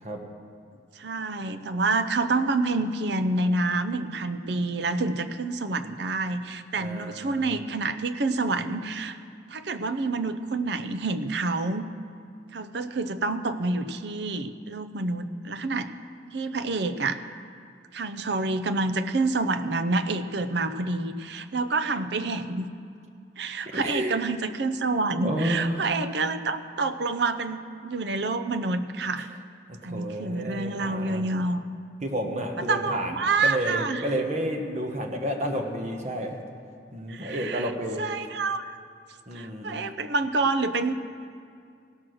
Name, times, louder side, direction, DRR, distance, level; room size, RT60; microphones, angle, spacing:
voice 1, 1.0-9.2 9.5-11.9 12.5-15.9 16.3-17.2 17.9-22.7 23.4-29.3 29.8-31.6 32.7-34.0 37.1-37.7 38.0-38.8 39.3-40.9, right 3 dB, 65° right, 10 dB, 0.6 m, -28 dB
voice 2, 6.8-7.6 23.7-24.2 25.2-25.9 29.2-29.3 29.7-31.2 32.0-36.4 36.9-38.0 39.3-39.8, equal, 40° right, 3 dB, 1.2 m, -31 dB
17.0 x 6.1 x 6.3 m, 2.3 s
head